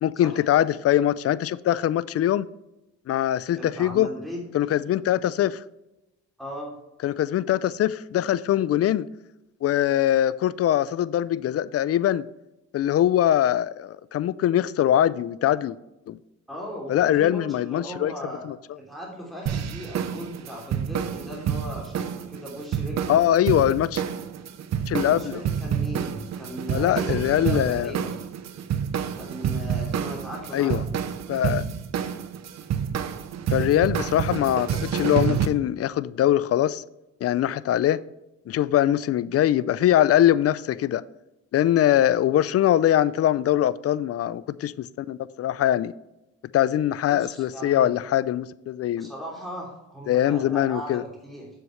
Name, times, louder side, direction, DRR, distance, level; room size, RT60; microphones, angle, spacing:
voice 1, 0.0-2.5 3.1-4.1 4.5-5.6 7.0-9.1 9.6-12.3 12.7-15.8 16.1-16.2 16.9-18.1 18.5-18.6 23.1-24.0 24.9-25.4 26.7-27.9 30.5-30.8 31.3-31.7 33.5-36.8 37.2-38.0 38.5-41.0 41.5-45.9 46.5-49.1 50.1-51.0, left 11 dB, 55° left, 0.4 m, -22 dB
voice 2, 3.5-4.4 6.4-6.7 16.5-18.4 18.8-23.2 25.0-28.2 29.2-30.9 47.1-47.9 49.0-51.5, equal, ahead, 2.9 m, -38 dB
sound 1, 19.5-35.5, right 8 dB, 60° right, 0.8 m, -29 dB
8.2 x 7.5 x 3.2 m
cardioid pair, 90°, 30 cm